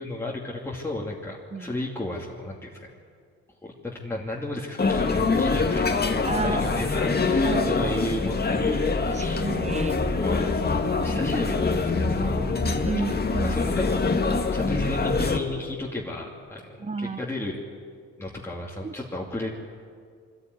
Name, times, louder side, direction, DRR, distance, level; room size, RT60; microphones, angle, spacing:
voice 1, 0.0-2.8 3.6-8.8 9.1-9.5 10.2-12.5 13.4-14.0 14.5-17.6 18.2-19.5, left 2 dB, 10° left, -4 dB, 2.7 m, -33 dB
sound 1, 4.8-15.4, left 3 dB, 30° left, 1.9 m, -24 dB
voice 2, 6.2-7.0 7.4-7.9 9.1-9.9 12.6-13.5 16.8-17.2 18.8-18.9, right 4 dB, 25° right, 14 dB, 1.0 m, -32 dB
23.5 x 14.0 x 9.7 m, 2.1 s
cardioid pair, 90°, 30 cm